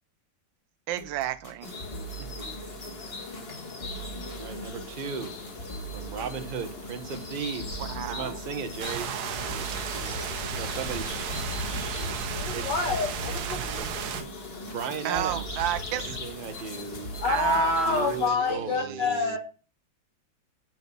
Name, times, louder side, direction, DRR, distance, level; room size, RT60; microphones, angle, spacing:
sound 1, 0.9-16.7 17.0-18.6, right 3 dB, 20° left, 1.6 m, -43 dB
voice 1, 0.9-1.8 7.8-8.3 15.0-16.2 17.2-19.1, right 13 dB, 85° right, 1.3 m, -31 dB
sound 2, 1.6-18.3, left 3 dB, 35° left, 1.6 m, -39 dB
voice 2, 4.3-5.4 5.9-9.1 10.5-11.3 12.0-12.7 14.6-15.5 15.9-17.1 17.6-19.4, right 6 dB, 40° right, 0.8 m, -36 dB
sound 3, 8.8-14.2, right 8 dB, 65° right, 1.2 m, -34 dB
voice 3, 12.4-13.7 14.0-14.1 17.2-19.4, left 4 dB, 70° left, 1.8 m, -27 dB
7.8 x 6.2 x 5.4 m
omnidirectional pair, 2.0 m